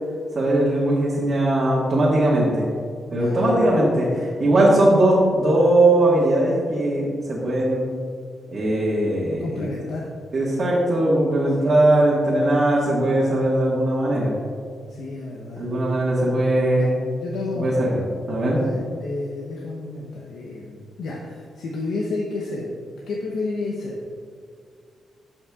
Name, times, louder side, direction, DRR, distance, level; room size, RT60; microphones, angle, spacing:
voice 1, 0.3-2.6 3.1-7.9 8.5-9.7 10.3-14.3 15.6-16.9 17.5-18.6, right 1 dB, 40° right, -7 dB, 1.5 m, -19 dB
voice 2, 3.1-3.8 9.4-10.1 11.6-12.1 14.9-15.6 16.8-16.9 17.2-17.8 18.5-22.7 23.1-23.9, left 3 dB, 90° left, -2 dB, 0.8 m, -31 dB
12.0 x 5.5 x 2.4 m, 2.2 s
cardioid pair, 100°, 0 cm